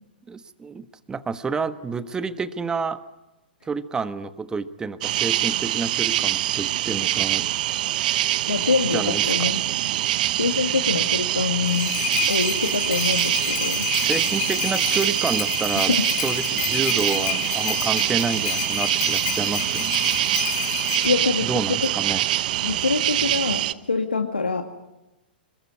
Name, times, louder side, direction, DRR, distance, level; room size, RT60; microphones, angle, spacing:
voice 1, 0.3-3.0 3.7-7.5 8.9-9.5 14.0-20.1 21.4-22.3, right 5 dB, 15° right, 12 dB, 1.4 m, -29 dB
sound 1, 5.0-23.7, right 14 dB, 55° right, 1.0 m, -24 dB
voice 2, 8.5-9.6 10.4-11.9 12.3-13.9 15.9-16.0 21.0-21.5 21.8-21.9 22.6-24.6, left 4 dB, 85° left, 4 dB, 2.1 m, -24 dB
sound 2, 11.4-21.1, left 11 dB, 50° left, 4.3 m, -29 dB
26.0 x 22.0 x 9.7 m, 1.0 s
figure-of-eight pair, 110°, 5 cm